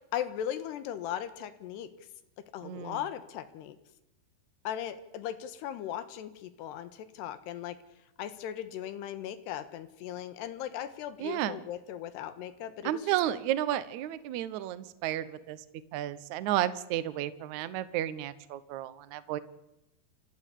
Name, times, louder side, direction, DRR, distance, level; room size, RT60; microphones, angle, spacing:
voice 1, 0.1-1.9 2.5-3.8 4.6-7.8 8.2-13.2, left 10 dB, 90° left, 12 dB, 3.4 m, -38 dB
voice 2, 2.6-3.0 11.2-11.6 12.8-15.6 15.9-19.4, right 12 dB, 75° right, 14 dB, 1.8 m, -32 dB
29.0 x 13.0 x 8.4 m, 0.89 s
omnidirectional pair, 4.7 m